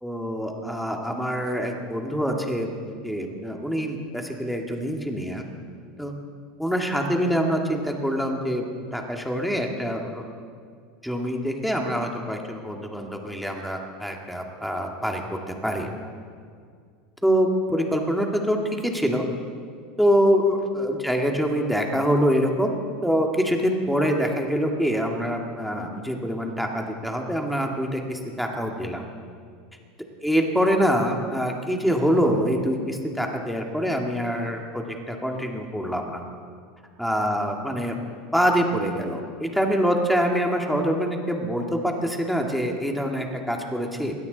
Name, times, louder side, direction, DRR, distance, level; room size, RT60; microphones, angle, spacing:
voice 1, 0.0-5.4 6.0-6.1 6.6-8.7 8.9-10.2 11.0-15.9 17.2-19.2 20.0-22.7 23.0-29.0 30.2-36.2 37.0-38.0 38.3-44.1, equal, ahead, 1 dB, 1.9 m, -25 dB
21.5 x 16.5 x 4.0 m, 2.1 s
supercardioid pair, 135°, 4 cm